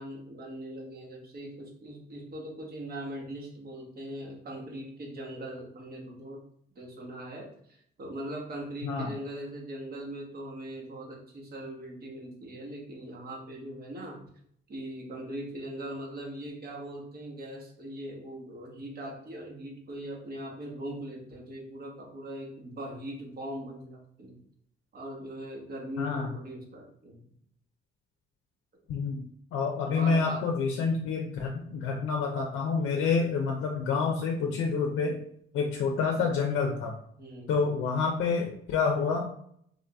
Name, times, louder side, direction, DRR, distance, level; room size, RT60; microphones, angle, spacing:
voice 1, 0.0-6.4 6.7-14.2 14.7-24.4 24.9-27.2 29.9-30.4 37.2-37.6, right 1 dB, 50° right, -1 dB, 1.3 m, -40 dB
voice 2, 26.0-26.3 28.9-29.2 29.5-35.2 35.5-36.9 37.5-39.2, left 5 dB, 80° left, 2 dB, 0.5 m, -28 dB
3.6 x 2.6 x 3.4 m, 0.67 s
cardioid pair, 90°, 20 cm